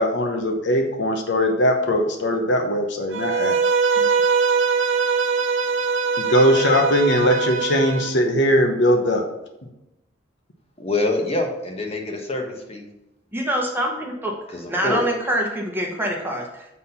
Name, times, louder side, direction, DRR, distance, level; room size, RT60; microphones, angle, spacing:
voice 1, 0.0-3.6 6.2-9.3, equal, 65° left, 4 dB, 0.9 m, -20 dB
Bowed string instrument, 3.1-8.1, right 5 dB, 80° right, 0.6 m, -22 dB
voice 2, 10.8-12.9 14.5-15.0, left 2 dB, 30° left, 2 dB, 1.2 m, -26 dB
voice 3, 13.3-14.3 14.7-16.7, equal, 10° right, 0 dB, 1.0 m, -25 dB
7.4 x 4.2 x 5.6 m, 0.93 s
head